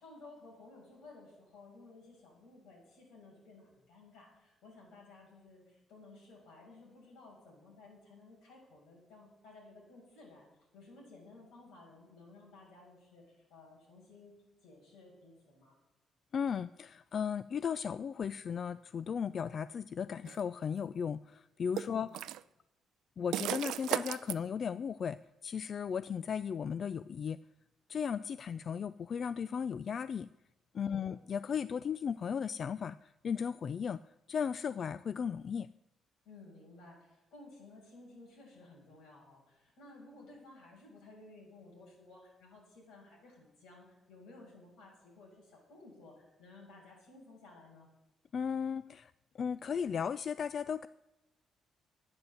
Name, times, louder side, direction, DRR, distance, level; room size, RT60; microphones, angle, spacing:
voice 1, 0.0-10.5 10.7-14.3 14.6-15.8 21.8-22.2 30.9-31.2 36.2-47.9, left 2 dB, 90° left, -2 dB, 6.3 m, -56 dB
voice 2, 16.3-22.2 23.2-25.2 25.4-27.4 27.9-30.3 30.7-34.0 34.3-35.7 48.3-50.9, left 7 dB, 50° left, 15 dB, 0.3 m, -36 dB
sound 1, 20.3-20.4 21.8-22.4 23.3-24.4, right 13 dB, 85° right, 0.4 m, -35 dB
11.5 x 9.5 x 7.8 m, 0.98 s
cardioid pair, 90°, 0 cm